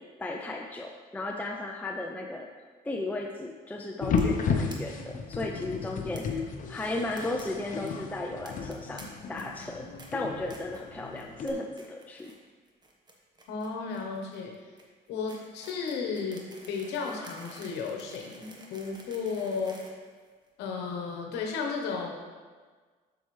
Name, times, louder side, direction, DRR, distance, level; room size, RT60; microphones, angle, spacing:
voice 1, 0.0-6.4 6.7-12.3, left 2 dB, 10° left, 2 dB, 0.5 m, -35 dB
sound 1, 4.0-11.5, left 5 dB, 50° left, 0.8 m, -33 dB
sound 2, 4.2-4.4 4.7-4.8 5.0-5.1 5.3-5.4 6.2-6.3 6.8-7.4 7.7-7.9 8.5-9.0 9.4-9.7 10.0-10.1 10.5-10.8 11.2-11.5 11.8-12.4 12.7-20.7, right 2 dB, 25° right, 1.2 m, -51 dB
voice 2, 13.5-14.5 15.1-19.8 20.6-22.1, left 5 dB, 85° left, 1 dB, 1.1 m, -34 dB
7.8 x 6.6 x 3.2 m, 1.5 s
cardioid pair, 110°, 17 cm